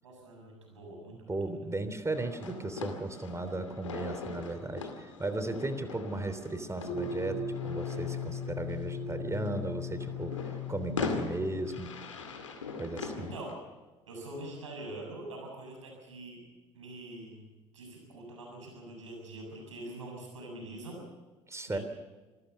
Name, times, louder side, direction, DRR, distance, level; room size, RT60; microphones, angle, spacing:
voice 1, 0.0-1.8 13.2-13.5 14.1-16.4 16.7-17.5 17.7-21.0 21.7-21.8, right 1 dB, 85° right, 0 dB, 7.2 m, -44 dB
voice 2, 1.3-11.9 12.7-13.3 21.5-21.8, right 2 dB, 20° right, 10 dB, 3.2 m, -36 dB
sound 1, 2.1-13.5, left 4 dB, 90° left, 2.3 m, -41 dB
sound 2, 6.9-12.1, left 5 dB, 60° left, 5.1 m, -38 dB
26.5 x 15.5 x 6.9 m, 1.2 s
hypercardioid pair, 55°, 16 cm